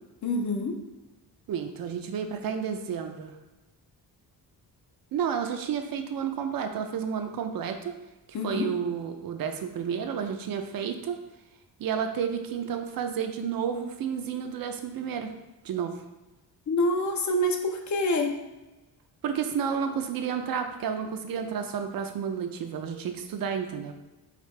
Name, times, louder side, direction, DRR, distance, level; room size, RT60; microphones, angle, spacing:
voice 1, 0.2-0.8 8.3-8.7 16.7-18.3, left 1 dB, 45° left, 4 dB, 0.5 m, -26 dB
voice 2, 1.5-3.4 5.1-7.9 8.4-11.2 11.8-15.3 15.6-16.0 19.2-23.9, right 7 dB, 60° right, 6 dB, 0.5 m, -31 dB
5.0 x 2.8 x 3.2 m, 1.0 s
cardioid pair, 135°, 41 cm